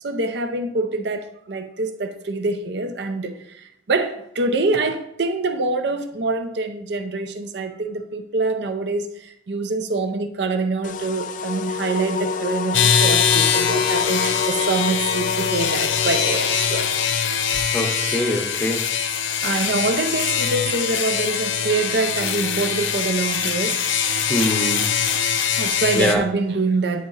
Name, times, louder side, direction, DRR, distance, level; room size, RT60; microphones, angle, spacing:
voice 1, 0.0-16.9 19.4-23.8 25.6-27.1, right 3 dB, 60° right, 0.6 m, -25 dB
sound 1, 10.8-17.1, left 5 dB, 40° left, 0.3 m, -27 dB
sound 2, 12.7-26.2, left 7 dB, 85° left, 0.7 m, -23 dB
voice 2, 17.7-18.9 19.3-19.5 24.3-24.8 26.0-26.2, equal, 5° left, 0.8 m, -23 dB
9.3 x 3.9 x 3.9 m
head